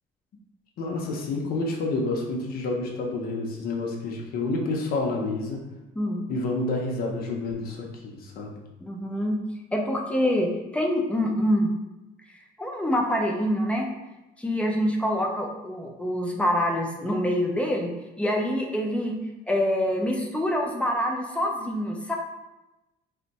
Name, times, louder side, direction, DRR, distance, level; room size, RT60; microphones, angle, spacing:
voice 1, 0.8-5.6 6.3-8.6, left 2 dB, 60° left, -1 dB, 0.6 m, -29 dB
voice 2, 8.8-9.4 9.7-10.5 10.7-11.7 12.6-13.9 14.4-17.9 18.2-19.2 19.5-22.2, equal, 5° left, 0 dB, 0.4 m, -25 dB
2.6 x 2.1 x 4.0 m, 1.0 s
cardioid pair, 110°, 17 cm